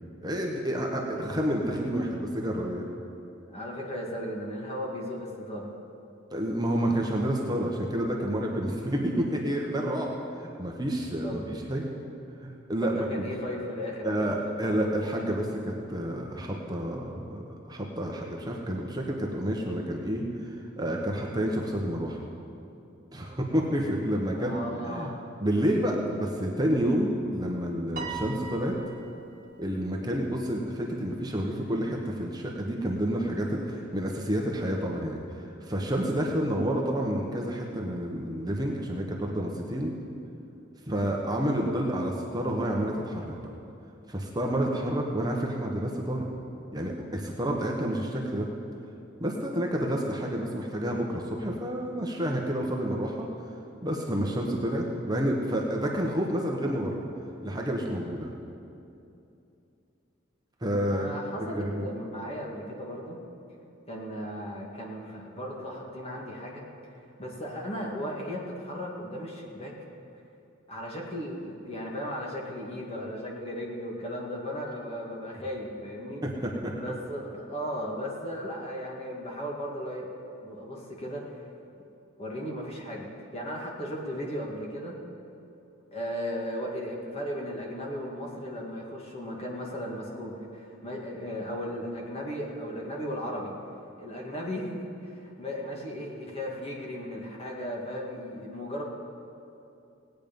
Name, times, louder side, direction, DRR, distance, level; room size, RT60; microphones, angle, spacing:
voice 1, 0.2-2.9 6.3-10.1 10.4-11.9 12.4-13.2 14.0-22.2 23.1-25.1 25.4-28.8 29.6-35.2 35.6-39.9 40.9-43.3 44.1-46.3 46.7-48.5 49.2-53.3 53.8-57.0 57.4-58.3 60.6-61.1 61.5-61.9 76.2-76.7, equal, 20° right, -1 dB, 1.1 m, -29 dB
voice 2, 3.5-5.7 11.2-11.6 12.8-14.9 24.3-25.3 41.6-41.9 60.8-63.2 63.9-66.6 67.2-69.7 70.7-76.2 76.5-80.1 80.4-81.4 82.2-85.0 85.9-93.6 94.0-98.8, equal, 30° left, -2 dB, 2.1 m, -36 dB
Piano, 28.0-29.5, right 4 dB, 40° right, 1.5 m, -39 dB
18.0 x 9.2 x 5.3 m, 2.8 s
head